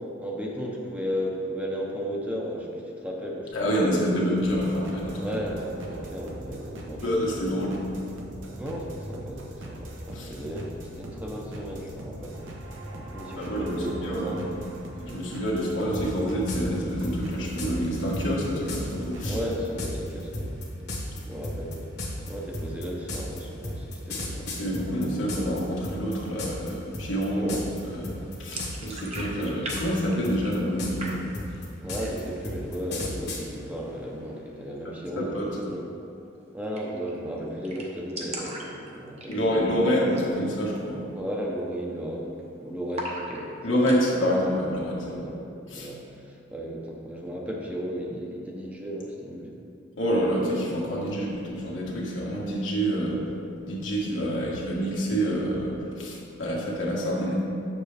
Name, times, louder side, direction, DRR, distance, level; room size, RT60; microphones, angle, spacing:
voice 1, 0.0-2.7 3.0-3.5 3.8-4.1 5.2-7.5 8.5-12.4 13.0-14.4 19.3-20.6 21.3-21.9 22.3-24.5 27.4-27.6 28.1-28.3 29.4-29.6 31.8-35.8 36.5-39.6 41.1-43.5 45.0-45.4 45.7-49.6, equal, 10° right, -2 dB, 0.7 m, -35 dB
voice 2, 3.5-5.4 7.0-7.7 10.1-10.3 13.4-14.5 15.0-19.4 24.6-27.6 27.9-28.1 28.4-31.2 35.2-35.5 39.3-41.0 43.6-45.2 45.7-45.9 50.0-53.2 53.6-57.4, equal, 80° left, -5 dB, 1.6 m, -27 dB
sound 1, 4.4-19.6, right 1 dB, 85° right, 1.0 m, -40 dB
sound 2, 15.9-16.1 16.5-16.6 17.0-17.7 18.1-18.3 18.7-18.8 19.2-25.6 25.8-26.7 26.9-27.2 27.5-27.8 28.0-28.9 29.1-30.0 30.2-33.4, left 2 dB, 60° left, 1.4 m, -33 dB
sound 3, 28.4-29.8 30.0-30.7 31.0-31.6 31.9-32.4 32.8-32.9 33.2-33.8 35.5-35.7 36.0-36.1 36.3-36.4 36.8-37.1 37.4-37.5 37.6-39.7 40.1-40.3 40.7-40.8 41.3-41.6 41.8-42.5 42.9-44.0, right 1 dB, 35° right, 0.9 m, -38 dB
6.9 x 6.9 x 3.4 m, 2.6 s
head